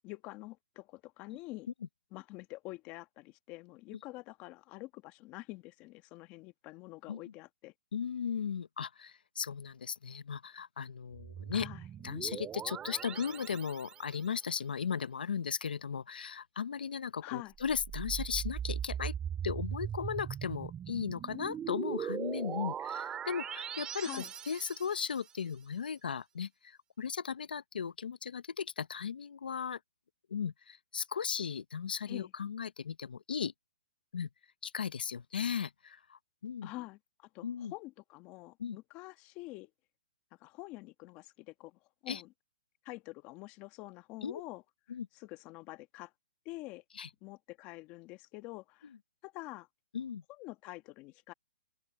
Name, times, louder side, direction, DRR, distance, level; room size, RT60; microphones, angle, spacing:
voice 1, 0.0-1.7 2.1-7.7 11.5-11.8 17.2-17.5 24.0-24.3 32.1-32.3 36.6-39.7 40.4-42.3 42.8-44.6 45.1-46.1 46.4-46.8 47.2-48.9 49.2-49.7 50.3-51.3, left 20 dB, 25° left, 1.5 m, -47 dB
voice 2, 7.9-11.7 12.0-19.1 19.4-24.1 24.5-29.8 30.3-33.5 34.1-34.3 34.6-36.7 37.4-37.7 38.6-38.8 42.1-42.2 44.2-44.4 44.9-45.1 47.0-47.1 49.9-50.2, left 7 dB, 85° left, 0.9 m, -36 dB
sound 1, 11.1-14.3 17.6-25.3, right 9 dB, 15° right, 2.9 m, -40 dB
open air
hypercardioid pair, 155°, 5 cm